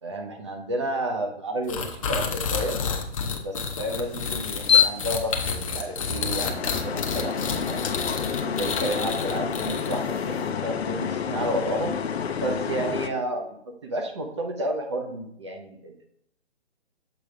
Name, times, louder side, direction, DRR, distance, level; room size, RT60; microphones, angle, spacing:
voice 1, 0.0-2.8 3.4-7.9 8.4-12.0 12.4-13.5 13.8-16.1, right 1 dB, 25° right, 3 dB, 0.6 m, -31 dB
sound 1, 1.7-10.2, left 5 dB, 30° left, 0.6 m, -30 dB
sound 2, 4.0-13.1, left 7 dB, 65° left, 0.7 m, -28 dB
6.8 x 3.2 x 4.8 m, 0.73 s
hypercardioid pair, 160°, 33 cm